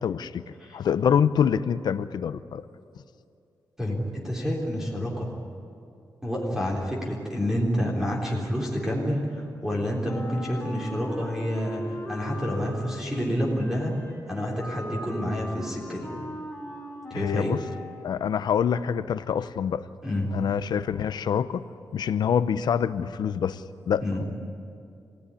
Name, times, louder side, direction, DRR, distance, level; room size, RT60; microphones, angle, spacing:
voice 1, 0.0-0.4 0.7-2.6 17.1-17.6 18.0-19.9 20.3-21.7 21.9-24.2, left 8 dB, 75° left, 13 dB, 0.7 m, -26 dB
voice 2, 3.8-5.3 6.2-13.9 14.3-16.1 17.1-17.5 20.0-20.3 24.0-24.2, equal, 5° right, -3 dB, 3.7 m, -28 dB
Wind instrument woodwind instrument, 10.0-18.2, left 1 dB, 10° left, 4.1 m, -39 dB
26.5 x 17.0 x 9.9 m, 2.5 s
wide cardioid pair, 165°, 7 cm